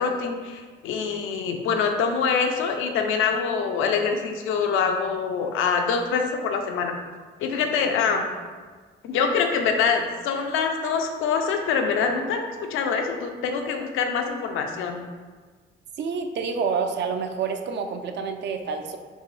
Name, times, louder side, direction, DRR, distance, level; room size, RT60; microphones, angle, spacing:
voice 1, 0.0-6.9 7.4-8.2 9.0-12.4 12.7-14.9, left 5 dB, 90° left, 4 dB, 0.5 m, -25 dB
voice 2, 16.0-19.0, right 5 dB, 60° right, 6 dB, 0.5 m, -28 dB
5.4 x 3.0 x 3.2 m, 1.5 s
cardioid pair, 90°, 20 cm